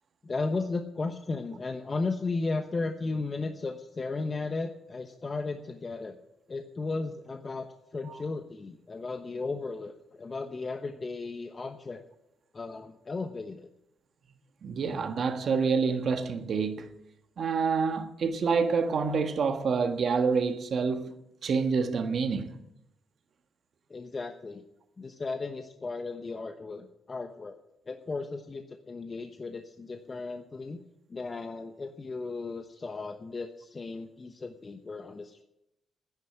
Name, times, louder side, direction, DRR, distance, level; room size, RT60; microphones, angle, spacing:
voice 1, 0.2-6.2 6.5-7.7 7.9-12.0 12.5-13.7 23.9-24.6 25.0-27.6 27.9-30.8 31.1-35.4, left 3 dB, 35° left, 1.0 m, -35 dB
voice 2, 14.6-16.9 17.4-22.6, right 5 dB, 60° right, 1.4 m, -27 dB
10.5 x 9.9 x 8.9 m
supercardioid pair, 65°, 0 cm